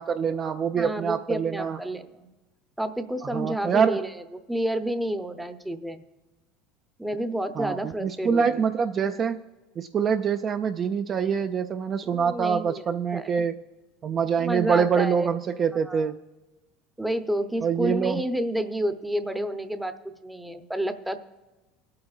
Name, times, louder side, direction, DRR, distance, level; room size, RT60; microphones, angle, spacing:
voice 1, 0.0-1.8 3.3-4.0 7.6-9.4 9.8-13.5 14.0-16.2 17.6-18.2, right 6 dB, 35° right, 6 dB, 0.4 m, -25 dB
voice 2, 0.8-2.3 2.8-6.0 7.0-8.6 12.1-13.3 14.4-15.3 15.8-16.1 17.0-19.9 20.2-21.2, right 1 dB, 5° right, 8 dB, 0.7 m, -30 dB
22.5 x 8.6 x 2.4 m, 1.1 s
supercardioid pair, 115°, 0 cm